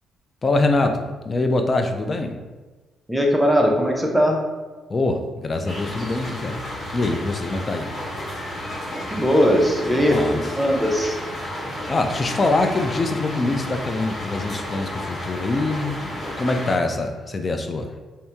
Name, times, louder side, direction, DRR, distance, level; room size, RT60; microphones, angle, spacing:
voice 1, 0.4-2.4 4.9-6.6 6.9-7.9 9.9-10.4 11.9-16.0 16.4-18.0, left 2 dB, 30° left, 5 dB, 0.4 m, -24 dB
voice 2, 3.1-4.4 9.1-10.2 10.5-11.2, equal, 5° right, 0 dB, 0.7 m, -19 dB
sound 1, 5.6-16.8, left 1 dB, 65° left, 1.5 m, -32 dB
2.7 x 2.7 x 3.4 m, 1.3 s
cardioid pair, 90°, 0 cm